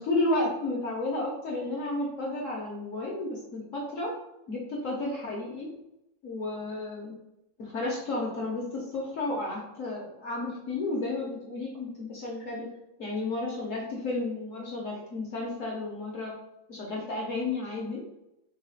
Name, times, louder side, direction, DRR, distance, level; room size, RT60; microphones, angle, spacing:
voice 1, 0.0-4.1 4.5-5.7 6.2-7.1 7.6-12.7 13.0-16.3 16.7-18.0, left 2 dB, 55° left, -3 dB, 0.9 m, -32 dB
4.0 x 2.3 x 4.0 m, 0.88 s
omnidirectional pair, 2.1 m